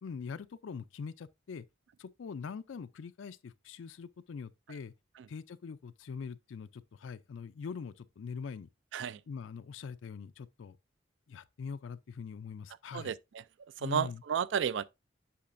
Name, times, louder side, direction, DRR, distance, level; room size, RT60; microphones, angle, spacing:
voice 1, 0.0-1.6 2.0-4.9 5.3-8.7 9.3-10.8 11.3-13.1 13.8-14.2, left 5 dB, 80° left, 0.4 m, -43 dB
voice 2, 13.8-14.8, right 8 dB, 65° right, 0.3 m, -31 dB
8.5 x 5.9 x 2.5 m
head